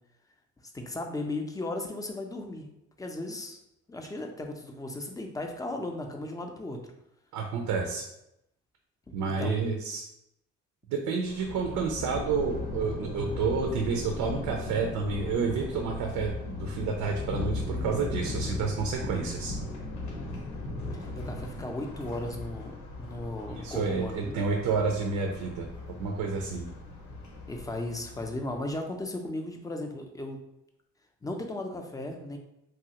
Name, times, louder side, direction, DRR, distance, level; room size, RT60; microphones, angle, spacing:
voice 1, 0.7-2.7 3.0-3.6 3.9-6.8 9.1-9.7 21.0-24.4 27.5-30.4 31.2-32.4, left 2 dB, 10° left, 3 dB, 0.4 m, -36 dB
voice 2, 7.3-8.0 9.1-10.0 10.9-19.5 23.5-25.7 26.0-26.6, right 5 dB, 90° right, 2 dB, 0.5 m, -30 dB
Thunder, 11.2-28.6, left 2 dB, 70° left, 0.8 m, -37 dB
3.1 x 2.4 x 2.8 m, 0.83 s
cardioid pair, 90°, 30 cm